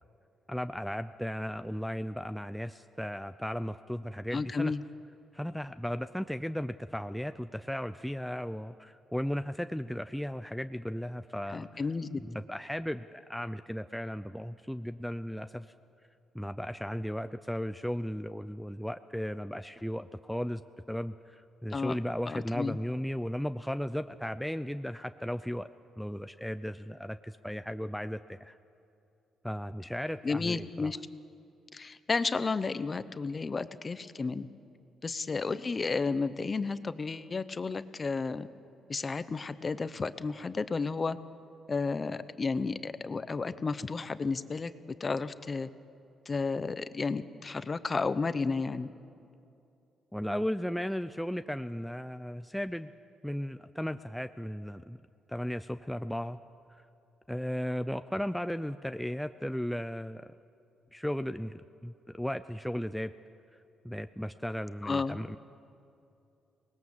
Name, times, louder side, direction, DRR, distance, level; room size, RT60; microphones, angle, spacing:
voice 1, 0.5-4.7 5.3-11.8 12.2-15.7 16.3-20.6 20.9-25.7 26.0-28.5 29.4-30.9 50.1-52.9 53.2-55.0 55.3-56.4 56.7-56.8 57.3-60.4 60.9-63.1 63.8-65.4, equal, ahead, 9 dB, 0.5 m, -35 dB
voice 2, 4.3-4.8 11.5-12.2 21.7-22.0 22.3-22.8 30.2-31.0 31.7-34.5 35.0-38.5 38.9-41.2 41.7-44.7 45.0-45.7 46.3-48.9 64.8-65.4, left 4 dB, 30° left, 13 dB, 0.9 m, -32 dB
24.5 x 20.0 x 7.3 m, 2.6 s
cardioid pair, 90°, 0 cm